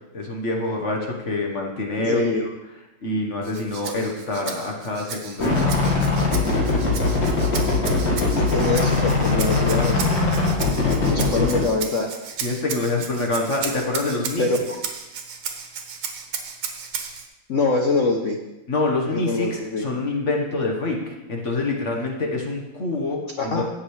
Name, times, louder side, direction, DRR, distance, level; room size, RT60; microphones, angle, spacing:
voice 1, 0.1-2.5 3.0-5.9 12.4-14.6 18.7-23.6, left 2 dB, 40° left, 1 dB, 1.2 m, -26 dB
voice 2, 2.0-2.4 8.3-10.1 11.1-12.1 14.4-14.6 17.5-18.4 19.1-19.9 23.4-23.6, left 3 dB, 75° left, 2 dB, 0.7 m, -24 dB
Rattle (instrument), 3.4-17.3, right 6 dB, 80° right, 1.9 m, -35 dB
sound 1, 5.4-11.6, left 3 dB, 55° left, 2.3 m, -21 dB
16.0 x 6.5 x 3.2 m, 1.0 s
omnidirectional pair, 2.3 m